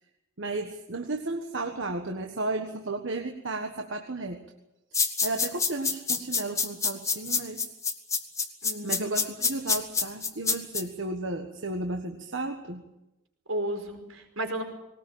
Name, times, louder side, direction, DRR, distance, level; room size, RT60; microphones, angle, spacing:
voice 1, 0.4-4.4 5.2-7.6 8.8-12.8, right 2 dB, 60° right, 4 dB, 1.5 m, -33 dB
sound 1, 4.9-10.8, left 5 dB, 15° left, 1.5 m, -26 dB
voice 2, 8.6-9.2 13.5-14.6, right 1 dB, 80° right, 4 dB, 5.0 m, -33 dB
20.0 x 19.5 x 8.9 m, 0.95 s
head